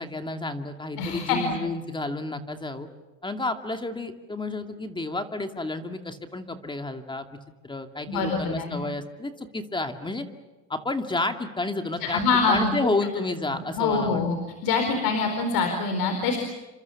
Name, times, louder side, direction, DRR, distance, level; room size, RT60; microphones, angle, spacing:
voice 1, 0.0-2.9 3.2-7.2 7.6-10.3 10.7-12.2 12.5-14.2, left 2 dB, 10° left, 7 dB, 2.4 m, -30 dB
voice 2, 1.0-1.6 8.1-8.8 12.0-12.7 13.8-14.4 14.6-16.4, left 4 dB, 65° left, 6 dB, 4.5 m, -24 dB
29.5 x 26.0 x 7.2 m, 1.1 s
supercardioid pair, 115°, 38 cm